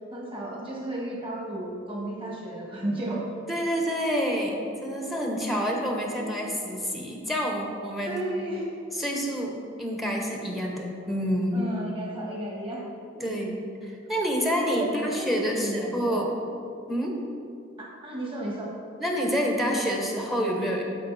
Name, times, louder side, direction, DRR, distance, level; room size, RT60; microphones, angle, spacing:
voice 1, 0.1-3.2 5.5-5.8 6.0-6.6 8.1-8.6 11.5-12.8 13.1-13.4 14.6-16.2 17.8-18.7, right 1 dB, 25° right, -4 dB, 1.8 m, -34 dB
voice 2, 3.5-8.2 8.9-11.7 13.2-13.6 13.8-16.3 16.9-17.2 19.0-20.8, equal, ahead, 0 dB, 1.0 m, -28 dB
12.0 x 5.1 x 4.2 m, 2.5 s
head